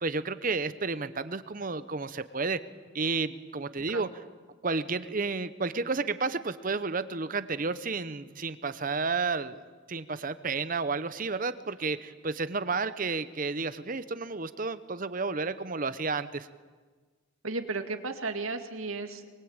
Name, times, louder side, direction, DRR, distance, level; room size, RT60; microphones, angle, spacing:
voice 1, 0.0-2.6 2.9-4.1 4.6-9.6 9.9-16.5, right 4 dB, 40° right, 13 dB, 0.8 m, -31 dB
voice 2, 17.4-19.3, right 3 dB, 80° right, 6 dB, 2.1 m, -34 dB
23.5 x 23.0 x 8.8 m, 1.4 s
head